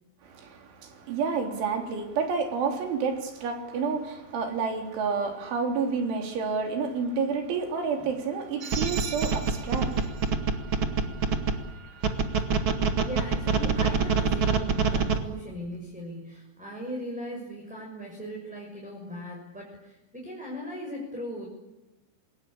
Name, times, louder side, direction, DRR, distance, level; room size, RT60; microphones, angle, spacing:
voice 1, 0.2-10.1, right 5 dB, 85° right, 6.0 m, -29 dB
sound 1, 8.6-11.5 12.0-15.2, right 5 dB, 50° right, 1.4 m, -25 dB
voice 2, 13.0-21.5, equal, ahead, 6.2 m, -38 dB
27.5 x 21.0 x 8.8 m
omnidirectional pair, 5.3 m